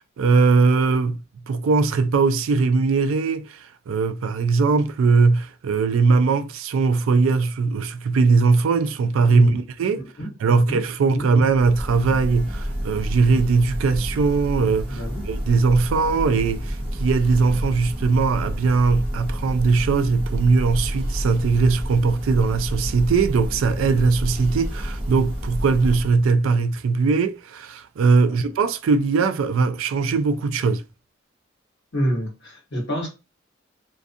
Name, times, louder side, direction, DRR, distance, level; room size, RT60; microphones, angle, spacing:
voice 1, 0.2-1.2 1.5-10.0 10.4-30.8, right 4 dB, 75° right, 0.3 m, -20 dB
voice 2, 10.0-10.8 11.1-11.3 14.9-15.3 28.2-28.4 31.9-33.1, equal, 60° left, 1.0 m, -28 dB
Church bell, 11.4-26.3, equal, 25° right, 1.1 m, -29 dB
2.4 x 2.3 x 2.5 m
head